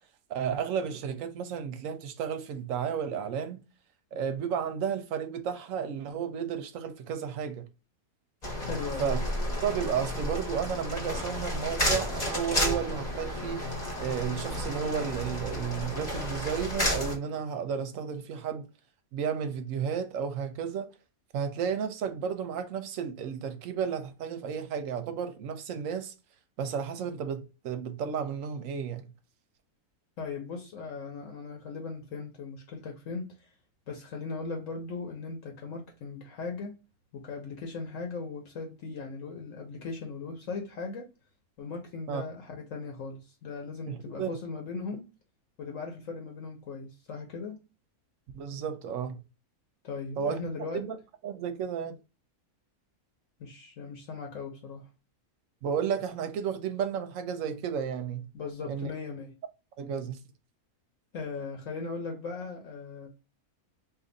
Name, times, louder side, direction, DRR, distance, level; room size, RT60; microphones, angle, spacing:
voice 1, 0.3-3.6 4.1-7.7 9.0-9.2 9.6-13.6 14.0-18.7 19.1-20.9 21.3-26.1 26.6-29.1 42.1-42.2 43.9-44.4 48.3-49.2 50.2-50.4 50.7-51.0 51.2-52.0 55.6-58.3 58.7-58.9 59.8-60.2, right 7 dB, 70° right, 0.9 m, -32 dB
sound 1, 8.4-17.2, left 1 dB, 35° left, 0.9 m, -32 dB
voice 2, 8.7-9.1 30.2-33.5 33.9-36.8 37.1-41.1 41.6-45.1 45.6-47.6 49.8-50.8 53.4-54.9 58.3-59.4 61.1-63.1, left 4 dB, 65° left, 1.1 m, -38 dB
2.7 x 2.5 x 3.8 m
omnidirectional pair, 1.5 m